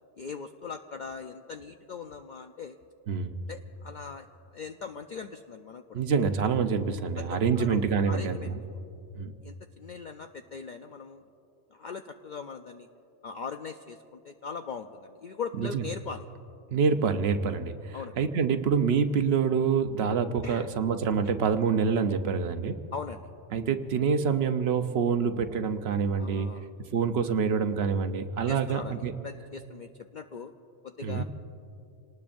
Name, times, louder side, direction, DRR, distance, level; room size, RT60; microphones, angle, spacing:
voice 1, 0.2-2.8 3.5-4.3 4.5-6.0 7.2-7.8 8.1-8.5 9.4-11.2 11.7-12.9 13.2-16.3 17.9-18.2 20.4-20.7 22.9-23.3 26.2-26.7 28.5-30.5 30.8-31.2, left 5 dB, 55° left, 6 dB, 0.6 m, -40 dB
voice 2, 5.9-8.6 9.1-9.3 15.6-15.8 16.7-22.8 23.5-26.5 26.9-29.1 31.0-31.2, right 6 dB, 65° right, 8 dB, 1.0 m, -26 dB
27.0 x 19.5 x 2.6 m, 2.7 s
omnidirectional pair, 1.2 m